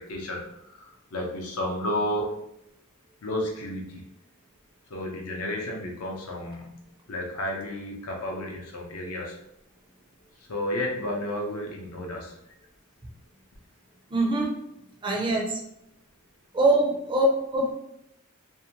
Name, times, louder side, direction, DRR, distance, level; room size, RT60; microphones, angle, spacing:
voice 1, 0.0-2.3 3.2-4.0 4.9-6.8 7.1-9.3 10.5-12.3, left 1 dB, 80° left, 0 dB, 0.6 m, -32 dB
voice 2, 14.1-14.6 15.0-15.6 16.5-17.3 17.5-17.7, right 2 dB, 20° right, -1 dB, 0.4 m, -23 dB
2.6 x 2.2 x 2.8 m, 0.80 s
head